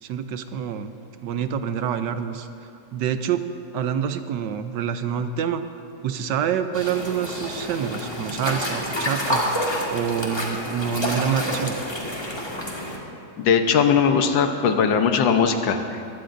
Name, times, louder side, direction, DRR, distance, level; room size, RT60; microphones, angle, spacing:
voice 1, 0.0-3.4 3.7-5.6 6.0-9.6 9.9-11.7, right 8 dB, 75° right, 9 dB, 1.2 m, -27 dB
sound 1, 6.7-13.0, equal, 15° left, 1.6 m, -28 dB
voice 2, 13.4-16.0, left 6 dB, 80° left, 6 dB, 1.6 m, -20 dB
22.5 x 16.5 x 2.6 m, 2.7 s
omnidirectional pair, 2.0 m